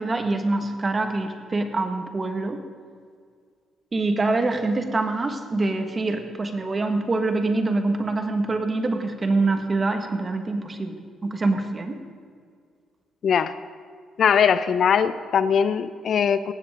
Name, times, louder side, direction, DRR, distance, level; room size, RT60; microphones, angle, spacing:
voice 1, 0.0-2.6 3.9-11.0 11.2-12.0, right 2 dB, 30° right, 6 dB, 1.7 m, -25 dB
voice 2, 13.2-13.5 14.2-16.5, left 7 dB, 60° left, 14 dB, 0.6 m, -21 dB
18.5 x 15.5 x 3.8 m, 2.1 s
cardioid pair, 90°, 0 cm